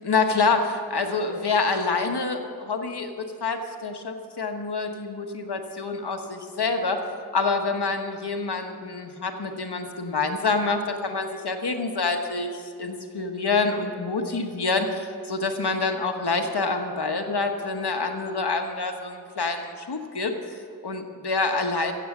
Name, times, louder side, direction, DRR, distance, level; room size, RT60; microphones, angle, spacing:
voice 1, 0.0-7.0 7.3-21.9, left 4 dB, 80° left, 5 dB, 1.3 m, -27 dB
15.5 x 7.8 x 7.2 m, 2.3 s
wide cardioid pair, 65°, 39 cm